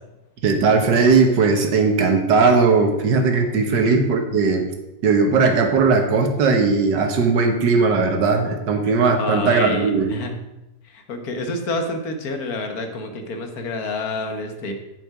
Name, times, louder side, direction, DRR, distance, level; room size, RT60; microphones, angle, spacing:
voice 1, 0.4-4.6 5.0-10.1, right 4 dB, 70° right, 5 dB, 1.8 m, -18 dB
voice 2, 3.5-4.0 9.1-10.3 10.8-14.7, left 2 dB, 55° left, 5 dB, 1.6 m, -28 dB
7.9 x 7.7 x 4.9 m, 0.95 s
omnidirectional pair, 2.0 m